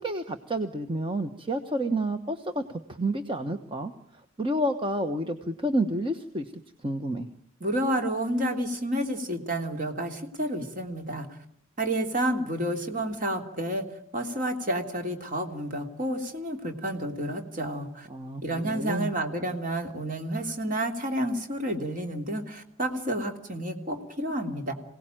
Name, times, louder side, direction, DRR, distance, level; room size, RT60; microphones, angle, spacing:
voice 1, 0.0-3.9 4.4-6.5 6.8-7.3 18.1-19.1, right 1 dB, 25° right, 7 dB, 1.2 m, -29 dB
voice 2, 7.6-11.3 11.8-13.8 14.1-18.1 18.4-24.7, right 1 dB, 40° right, 4 dB, 3.1 m, -30 dB
26.5 x 18.0 x 9.1 m, 0.74 s
head